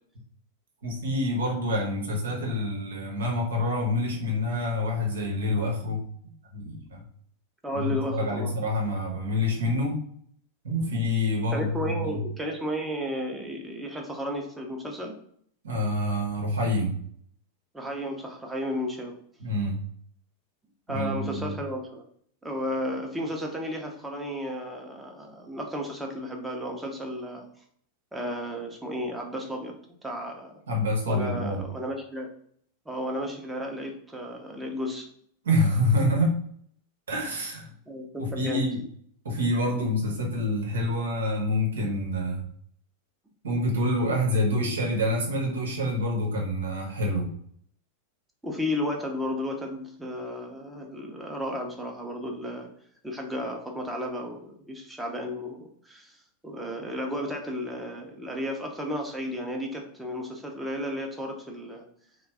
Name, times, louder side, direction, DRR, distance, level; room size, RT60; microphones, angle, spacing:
voice 1, 0.8-6.0 6.5-7.0 7.7-10.0 10.6-12.2 15.6-17.0 19.4-19.8 20.9-21.6 30.7-31.6 35.4-36.4 37.1-37.7 38.2-38.8 39.2-42.4 43.4-47.3, left 1 dB, 65° right, 0 dB, 0.9 m, -27 dB
voice 2, 7.6-8.6 11.5-15.2 17.7-19.2 20.9-22.0 22.4-27.5 28.1-29.8 30.0-30.6 31.1-32.3 32.9-35.1 37.9-38.7 48.4-52.7 53.0-56.2 56.4-61.8, equal, 5° right, 1 dB, 0.7 m, -33 dB
3.2 x 2.2 x 3.4 m, 0.63 s
figure-of-eight pair, 90°, 0 cm